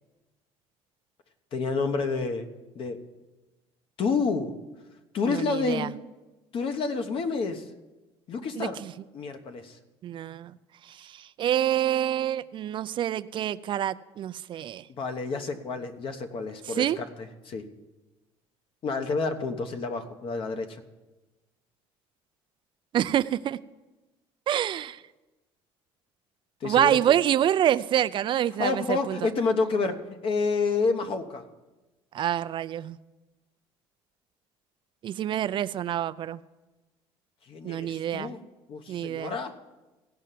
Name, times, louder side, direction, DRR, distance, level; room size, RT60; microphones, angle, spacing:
voice 1, 1.5-2.5 2.7-3.0 4.0-4.5 5.1-5.9 6.5-7.7 8.3-8.8 9.1-9.8 15.0-17.7 18.8-20.8 26.6-27.0 28.6-31.4 37.5-38.4 38.7-39.5, left 4 dB, 55° left, 8 dB, 1.1 m, -29 dB
voice 2, 5.3-5.9 8.6-8.9 10.0-10.5 10.9-14.8 16.7-17.0 22.9-23.6 24.5-25.0 26.6-29.2 32.1-33.0 35.0-36.4 37.6-38.3 38.9-39.3, right 11 dB, 45° right, 13 dB, 0.4 m, -27 dB
16.0 x 5.5 x 7.6 m, 1.1 s
cardioid pair, 100°, 11 cm